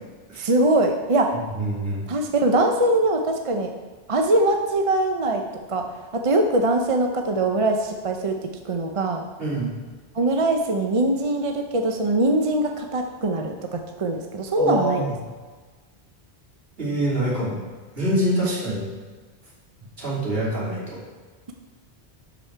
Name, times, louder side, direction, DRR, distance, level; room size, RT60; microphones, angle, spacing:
voice 1, 0.4-1.3 2.1-3.7 4.1-5.4 5.7-5.9 6.1-8.3 8.6-9.3 10.1-15.1 18.4-18.5, right 2 dB, 35° right, 4 dB, 0.6 m, -22 dB
voice 2, 1.6-2.0 9.4-9.7 14.6-15.1 16.8-17.6 17.9-18.9 20.0-21.0, right 1 dB, 60° right, -7 dB, 3.2 m, -25 dB
12.0 x 5.1 x 4.5 m, 1.4 s
omnidirectional pair, 1.1 m